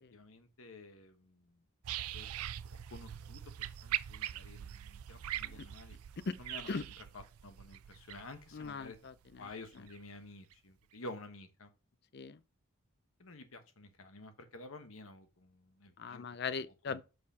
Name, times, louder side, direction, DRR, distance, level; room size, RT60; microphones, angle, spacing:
voice 1, 0.1-1.6 2.1-2.3 2.7-3.4 3.8-6.0 6.4-6.7 7.0-9.0 9.4-11.7 13.2-16.2 16.9-17.0, left 2 dB, 65° left, 1.2 m, -51 dB
sound 1, 1.8-10.0 10.5-10.6, right 12 dB, 80° right, 0.4 m, -42 dB
voice 2, 8.5-9.5 12.1-12.4 16.0-17.0, left 5 dB, 45° left, 0.5 m, -40 dB
7.4 x 6.3 x 2.8 m
head